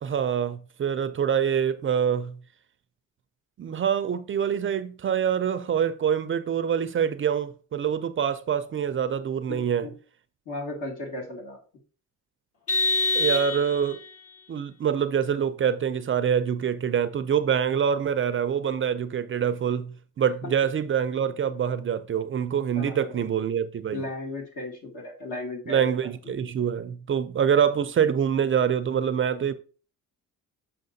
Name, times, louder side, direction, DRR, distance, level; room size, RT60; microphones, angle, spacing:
voice 1, 0.0-2.4 3.6-9.9 13.1-14.0 14.5-24.0 25.7-29.5, right 8 dB, 40° right, 0.4 m, -25 dB
voice 2, 9.5-9.9 10.5-11.6 22.7-23.3 23.9-26.4, left 2 dB, 65° left, 2.6 m, -36 dB
Vehicle horn car horn honking, 12.7-14.1, left 2 dB, 45° left, 1.3 m, -25 dB
6.6 x 5.6 x 2.7 m
cardioid pair, 105°, 34 cm